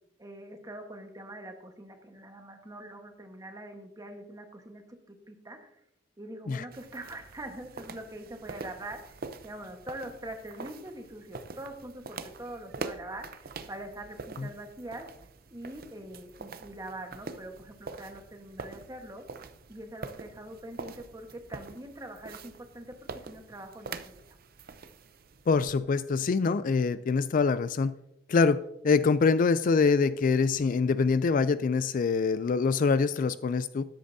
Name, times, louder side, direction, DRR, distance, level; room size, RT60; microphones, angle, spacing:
voice 1, 0.2-4.8 5.1-5.7 6.2-9.2 9.4-13.4 13.7-15.1 15.5-19.2 19.7-22.9 23.3-24.3, right 1 dB, 20° right, 4 dB, 1.3 m, -43 dB
sound 1, 6.7-25.7, right 4 dB, 55° right, 0.7 m, -45 dB
voice 2, 25.5-27.9 28.3-33.9, left 4 dB, 45° left, 14 dB, 0.3 m, -25 dB
13.0 x 10.0 x 2.7 m, 0.82 s
head